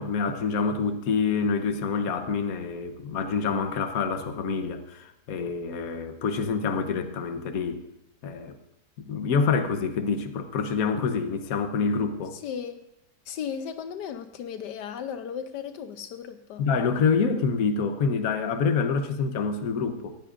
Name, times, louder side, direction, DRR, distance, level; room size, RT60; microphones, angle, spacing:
voice 1, 0.0-7.8 8.2-8.6 9.0-12.4 16.6-20.2, left 5 dB, 60° left, 8 dB, 1.3 m, -27 dB
voice 2, 12.3-12.8 13.3-16.7, left 7 dB, 85° left, 9 dB, 1.3 m, -35 dB
18.5 x 15.0 x 2.5 m, 0.83 s
omnidirectional pair, 1.8 m